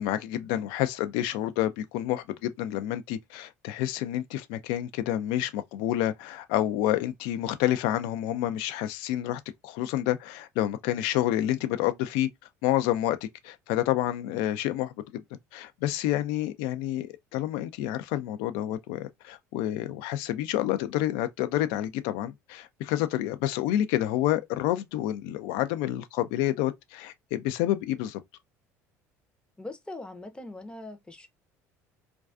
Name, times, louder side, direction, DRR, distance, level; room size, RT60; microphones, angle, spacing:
voice 1, 0.0-12.3 12.6-15.2 15.5-28.2, left 13 dB, 70° left, 0.4 m, -29 dB
voice 2, 29.6-31.3, left 2 dB, 10° left, 0.5 m, -41 dB
2.3 x 2.3 x 2.3 m
hypercardioid pair, 70°, 8 cm